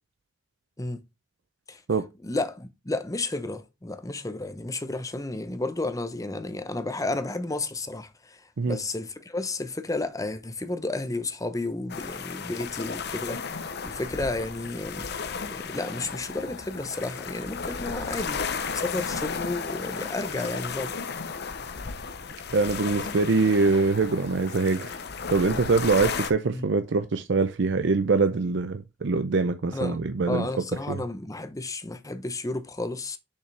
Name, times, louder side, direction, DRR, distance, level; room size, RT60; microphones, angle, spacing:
voice 1, 2.2-15.1 15.5-18.4 18.7-21.0 26.5-26.7 29.7-30.0 30.3-33.2, left 2 dB, 15° left, 0.8 m, -32 dB
sound 1, 11.9-26.3, left 5 dB, 60° left, 0.8 m, -34 dB
voice 2, 22.5-25.0 25.3-30.5 30.9-31.0, right 4 dB, 65° right, 0.6 m, -24 dB
6.8 x 5.5 x 3.3 m
head